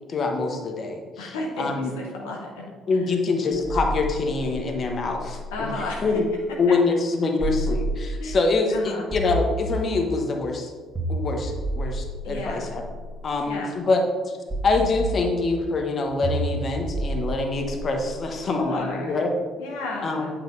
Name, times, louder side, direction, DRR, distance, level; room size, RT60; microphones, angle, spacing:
voice 1, 0.1-1.9 2.9-6.3 6.6-10.7 11.1-12.8 13.2-14.4 14.6-19.3 20.0-20.3, left 3 dB, 45° left, 3 dB, 0.9 m, -25 dB
voice 2, 1.2-2.7 5.5-6.1 8.2-8.4 8.7-9.0 12.2-12.7 13.5-13.8 18.5-19.2 19.6-20.3, left 2 dB, 75° left, -1 dB, 0.8 m, -33 dB
sound 1, 3.5-6.3 7.4-8.4 9.1-10.2 10.9-13.2 14.5-15.6 16.2-18.4, right 1 dB, 20° right, 1.5 m, -30 dB
8.7 x 5.7 x 2.6 m, 1.5 s
figure-of-eight pair, 50°, 0 cm